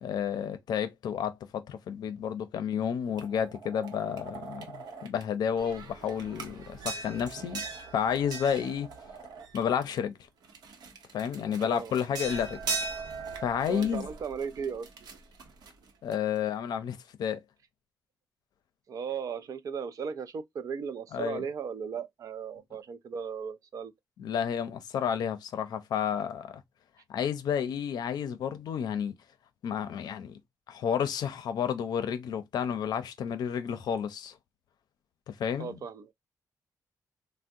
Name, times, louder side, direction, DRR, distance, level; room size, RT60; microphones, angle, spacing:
voice 1, 0.0-7.6 7.9-8.9 9.5-10.1 11.1-12.6 13.4-14.1 16.0-17.4 21.1-21.4 24.2-26.5 27.1-29.1 29.6-30.4 30.7-34.4 35.3-35.8, left 8 dB, 80° left, 0.5 m, -31 dB
sound 1, 3.2-5.2 5.6-10.0 10.4-16.4, right 4 dB, 80° right, 0.8 m, -40 dB
voice 2, 11.6-11.9 13.7-14.9 18.9-23.9 35.6-36.1, right 6 dB, 55° right, 0.4 m, -36 dB
3.4 x 2.1 x 2.5 m
wide cardioid pair, 145°, 7 cm